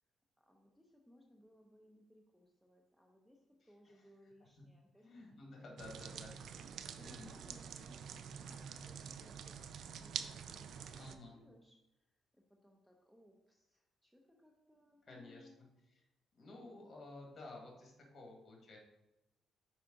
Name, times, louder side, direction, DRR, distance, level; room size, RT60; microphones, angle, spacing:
voice 1, 0.4-5.1 7.0-11.8 12.3-15.7, left 1 dB, 5° right, 1 dB, 0.8 m, -65 dB
voice 2, 5.0-6.4 7.0-7.3 11.0-11.4 15.1-15.5 16.3-18.8, left 2 dB, 45° left, 0 dB, 2.0 m, -53 dB
sound 1, 5.8-11.2, right 7 dB, 70° right, 0.4 m, -47 dB
5.7 x 4.8 x 3.9 m, 0.94 s
cardioid pair, 90°, 0 cm